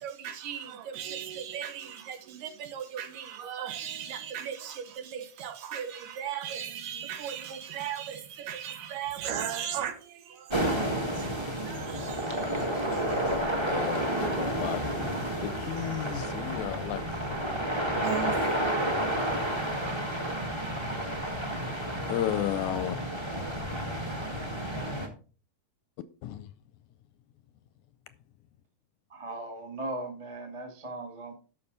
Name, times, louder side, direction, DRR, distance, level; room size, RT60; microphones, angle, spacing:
voice 1, 0.0-13.4 18.0-18.4 19.0-19.1, right 9 dB, 85° right, 2.8 m, -37 dB
sound 1, 10.5-25.1, right 1 dB, 15° right, 0.8 m, -31 dB
voice 2, 13.6-17.1 22.1-23.0 26.2-26.5, left 12 dB, 80° left, 1.8 m, -33 dB
voice 3, 29.1-31.3, right 2 dB, 35° right, 0.5 m, -38 dB
12.5 x 5.8 x 3.9 m
omnidirectional pair, 3.8 m